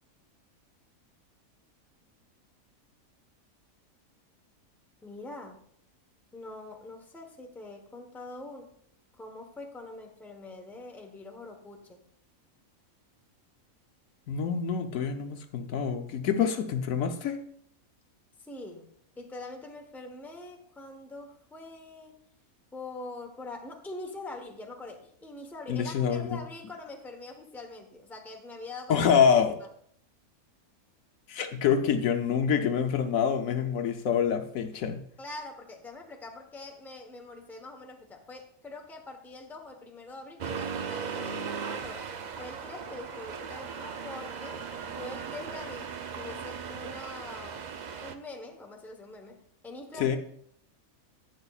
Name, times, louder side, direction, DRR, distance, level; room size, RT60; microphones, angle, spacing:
voice 1, 5.0-5.6 6.3-8.7 9.1-12.1 18.4-18.9 19.2-22.2 22.7-29.1 29.6-29.7 35.2-42.1 42.4-44.6 44.9-47.7 48.0-50.1, left 2 dB, ahead, 3 dB, 0.8 m, -44 dB
voice 2, 14.3-17.4 25.7-26.3 28.9-29.6 31.3-35.0 50.0-50.2, left 7 dB, 70° left, 6 dB, 1.1 m, -26 dB
Accelerating revving vroom, 40.4-48.1, right 6 dB, 90° right, 0.3 m, -37 dB
11.0 x 8.7 x 2.4 m, 0.66 s
omnidirectional pair, 1.5 m